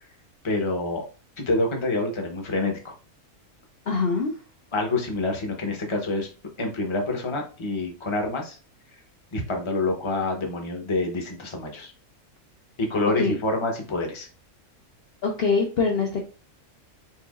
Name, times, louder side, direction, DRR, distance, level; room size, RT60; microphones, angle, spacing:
voice 1, 0.4-1.0 1.4-3.0 4.7-6.3 6.6-8.6 9.3-11.9 12.8-14.3, left 2 dB, 25° left, 2 dB, 0.8 m, -27 dB
voice 2, 3.9-4.3 13.2-13.4 15.2-16.2, left 4 dB, 50° left, 0 dB, 0.8 m, -23 dB
4.6 x 3.8 x 2.4 m, 0.34 s
omnidirectional pair, 1.6 m